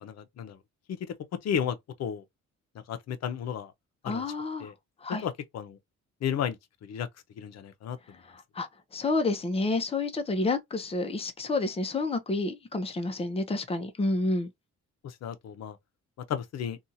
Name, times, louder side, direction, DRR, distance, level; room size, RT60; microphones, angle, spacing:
voice 1, 0.0-0.6 0.9-1.0 1.4-2.2 2.9-3.7 4.0-4.2 4.6-4.7 5.1-5.8 6.2-6.6 6.8-7.1 7.4-8.0 15.0-15.8 16.3-16.8, left 8 dB, 60° left, 0.7 m, -33 dB
voice 2, 4.1-4.7 5.0-5.2 8.6-8.7 8.9-14.5, left 2 dB, 20° left, 0.6 m, -29 dB
2.7 x 2.3 x 2.7 m
cardioid pair, 90°, 30 cm